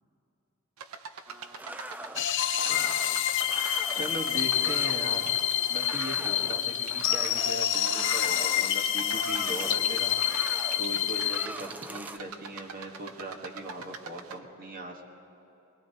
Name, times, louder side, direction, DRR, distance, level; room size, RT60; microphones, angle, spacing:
sound 1, 0.8-14.4, right 6 dB, 85° right, 0.7 m, -44 dB
sound 2, 1.3-12.2, right 1 dB, 5° right, 0.3 m, -43 dB
sound 3, 2.2-11.5, left 11 dB, 60° left, 0.5 m, -28 dB
voice 1, 2.5-3.0 3.9-5.3 5.7-15.1, right 1 dB, 45° right, 1 dB, 1.3 m, -39 dB
21.5 x 20.5 x 2.8 m, 2.9 s
head